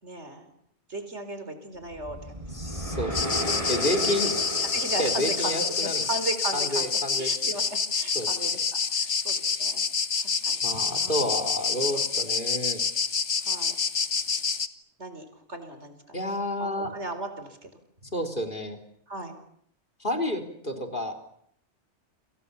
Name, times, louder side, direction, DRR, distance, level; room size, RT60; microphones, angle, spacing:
voice 1, 0.0-0.5 0.9-2.7 4.7-6.9 7.2-8.6 8.9-9.8 10.2-10.6 11.0-11.4 11.9-12.1 13.5-13.7 15.0-16.2 16.6-17.7 19.1-19.3, right 2 dB, 70° right, 9 dB, 4.7 m, -36 dB
sound 1, 1.9-6.2, right 1 dB, 30° right, 7.9 m, -34 dB
voice 2, 2.5-4.3 5.0-6.0 6.5-7.3 8.1-8.3 9.5-9.7 10.6-12.8 16.1-16.9 18.1-18.8 20.0-21.2, left 1 dB, 45° left, 4 dB, 4.1 m, -30 dB
sound 2, 3.1-14.7, left 5 dB, 85° left, 1.9 m, -27 dB
29.5 x 27.0 x 7.1 m, 0.69 s
omnidirectional pair, 1.2 m